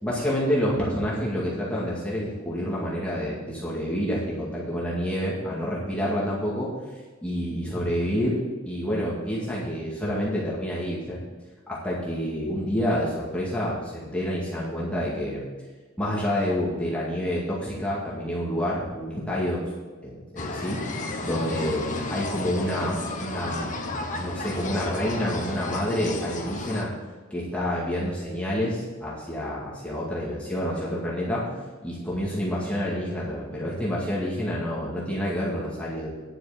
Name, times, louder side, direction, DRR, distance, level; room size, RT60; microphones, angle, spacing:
voice 1, 0.0-6.7 7.2-11.2 11.7-15.4 16.0-19.7 20.0-23.7 24.2-26.9 27.3-31.5 31.8-36.1, equal, 5° left, -7 dB, 2.1 m, -28 dB
sound 1, 20.4-26.9, left 2 dB, 40° left, 1.2 m, -32 dB
10.0 x 6.1 x 7.3 m, 1.4 s
head